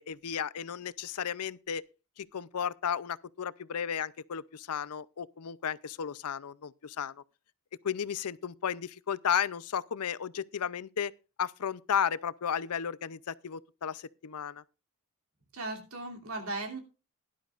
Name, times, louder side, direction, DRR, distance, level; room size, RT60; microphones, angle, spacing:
voice 1, 0.0-1.8 2.2-7.1 7.8-11.1 11.4-14.6, left 8 dB, 90° left, 0.5 m, -34 dB
voice 2, 15.5-16.8, right 2 dB, 75° right, 2.8 m, -37 dB
16.5 x 11.5 x 2.4 m
head